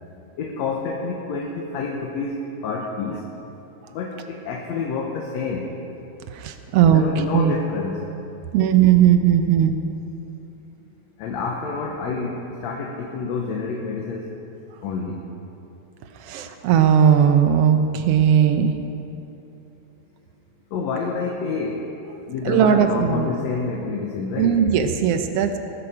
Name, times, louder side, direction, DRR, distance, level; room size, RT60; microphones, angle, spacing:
voice 1, 0.4-2.4 2.6-3.3 3.9-5.7 6.9-8.0 11.2-14.4 14.8-15.2 20.7-22.0 22.2-24.6, left 4 dB, 70° left, 0 dB, 2.2 m, -28 dB
voice 2, 6.3-7.1 7.3-7.5 8.5-9.8 16.3-18.7 22.5-23.3 24.4-25.6, right 9 dB, 75° right, 7 dB, 1.4 m, -17 dB
19.0 x 11.5 x 4.9 m, 2.9 s
omnidirectional pair, 3.4 m